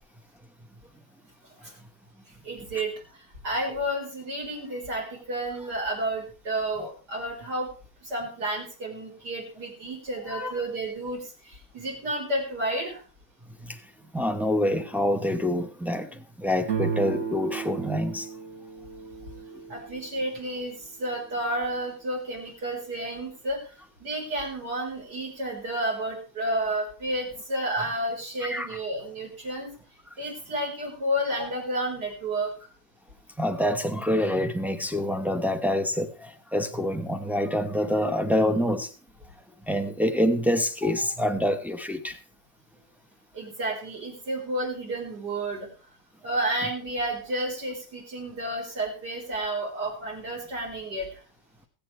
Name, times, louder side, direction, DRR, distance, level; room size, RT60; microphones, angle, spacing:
voice 1, 2.4-7.7 8.0-13.0 19.7-23.6 24.0-29.7 30.2-32.5 40.8-41.0 43.3-45.7 46.2-51.2, right 1 dB, 65° right, 4.9 m, -31 dB
voice 2, 14.1-18.3 28.4-28.8 33.4-38.9 39.7-42.2, left 1 dB, ahead, 0.4 m, -26 dB
sound 1, 16.6-20.3, right 7 dB, 45° right, 1.4 m, -34 dB
22.5 x 8.6 x 3.2 m
omnidirectional pair, 1.9 m